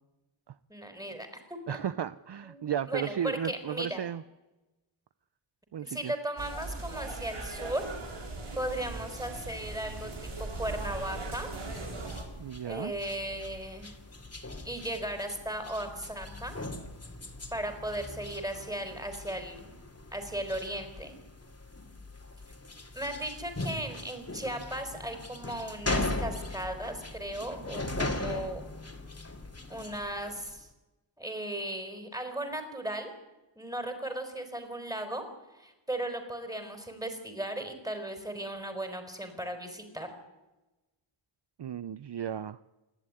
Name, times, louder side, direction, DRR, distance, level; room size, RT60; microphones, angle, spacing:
voice 1, 0.7-1.8 2.5-4.0 5.8-7.9 8.6-11.5 12.6-13.9 14.6-16.5 17.5-19.7 20.1-21.1 22.9-28.6 29.7-30.7 31.2-33.1 33.6-35.2 35.5-40.1, right 1 dB, 5° right, 6 dB, 4.6 m, -36 dB
voice 2, 1.7-4.2 5.7-6.1 12.4-12.9 41.6-42.6, right 9 dB, 55° right, 14 dB, 0.6 m, -34 dB
sound 1, 6.4-12.2, right 2 dB, 80° right, 5.7 m, -39 dB
sound 2, 11.7-30.6, left 2 dB, 30° left, 2.7 m, -39 dB
27.5 x 11.5 x 10.0 m, 1.1 s
wide cardioid pair, 85°, 49 cm